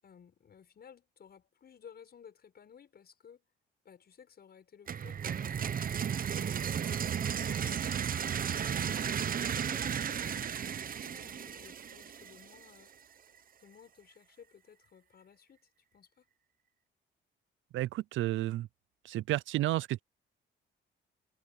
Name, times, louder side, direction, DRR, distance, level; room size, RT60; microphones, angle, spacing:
voice 1, 0.0-3.4 3.8-5.7 6.2-8.0 8.4-12.9 13.6-16.3, left 7 dB, 50° left, 6.5 m, -57 dB
sound 1, 4.9-12.6, right 8 dB, 45° right, 0.9 m, -34 dB
voice 2, 17.7-18.7 19.0-20.0, right 15 dB, 75° right, 0.5 m, -31 dB
cardioid pair, 90°, 20 cm